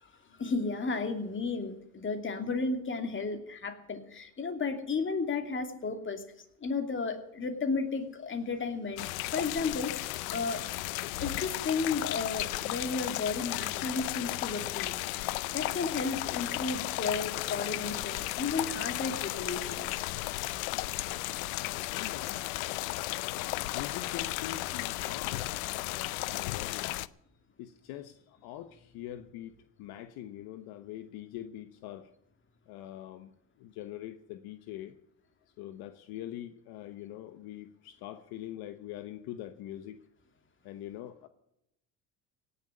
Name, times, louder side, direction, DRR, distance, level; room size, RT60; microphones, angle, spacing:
voice 1, 0.0-6.2 6.6-10.6 11.2-15.3 15.5-20.0, left 4 dB, 30° left, 6 dB, 2.6 m, -33 dB
sound 1, 9.0-27.1, left 18 dB, 85° left, 0.6 m, -34 dB
voice 2, 21.9-22.4 23.4-25.6 25.8-26.9 27.6-32.1 32.7-33.3 33.6-35.0 35.6-40.0 40.6-41.3, left 12 dB, 65° left, 10 dB, 1.1 m, -43 dB
17.5 x 7.0 x 9.8 m, 0.79 s
supercardioid pair, 90°, 41 cm